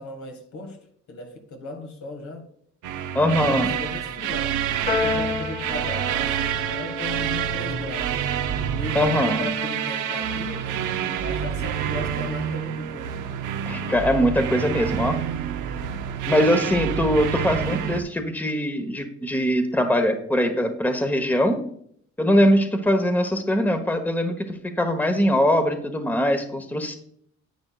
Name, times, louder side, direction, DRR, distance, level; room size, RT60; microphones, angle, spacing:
voice 1, 0.0-2.5 3.2-8.3 8.7-10.8 11.2-13.2, left 2 dB, 65° left, 1.8 m, -36 dB
sound 1, 2.8-18.0, right 9 dB, 85° right, 0.8 m, -27 dB
voice 2, 3.1-3.7 8.9-9.4 13.6-15.2 16.3-21.6 22.2-27.0, equal, 5° left, 1.1 m, -22 dB
Piano, 4.9-11.4, left 5 dB, 30° left, 1.3 m, -34 dB
10.5 x 8.7 x 2.4 m
cardioid pair, 90°, 30 cm